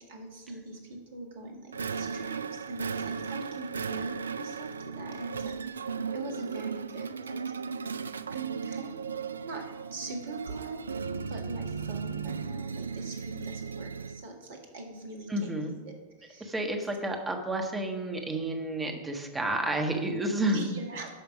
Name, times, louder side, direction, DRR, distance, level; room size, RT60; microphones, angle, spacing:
voice 1, 0.0-5.5 6.1-7.4 8.3-8.9 9.4-10.8 11.3-16.5 20.5-21.1, right 3 dB, 55° right, 2 dB, 1.9 m, -42 dB
sound 1, 1.7-14.3, right 5 dB, 70° right, 0.3 m, -36 dB
voice 2, 15.3-15.7 16.4-20.7, right 1 dB, 10° right, 3 dB, 1.3 m, -30 dB
9.1 x 5.5 x 6.1 m, 1.3 s
figure-of-eight pair, 90°, 0 cm